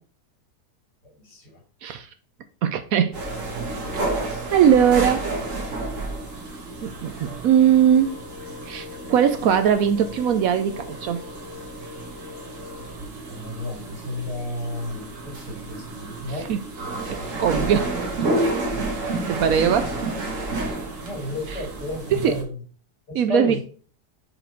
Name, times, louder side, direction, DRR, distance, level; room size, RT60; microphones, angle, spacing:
voice 1, 1.0-1.6 1.9-2.0 13.0-16.5 21.0-22.6 23.1-23.6, left 2 dB, 90° left, 2.9 m, -32 dB
voice 2, 2.6-3.2 4.5-5.3 6.8-7.1 7.4-8.2 8.7-11.2 16.3-16.6 17.1-17.9 19.3-19.9 22.2-22.4 23.1-23.6, right 8 dB, 70° right, 1.0 m, -20 dB
sound 1, 3.1-22.4, right 2 dB, 55° right, 1.7 m, -31 dB
sound 2, 7.9-12.9, left 8 dB, 40° left, 1.8 m, -43 dB
5.0 x 4.8 x 4.4 m
omnidirectional pair, 1.7 m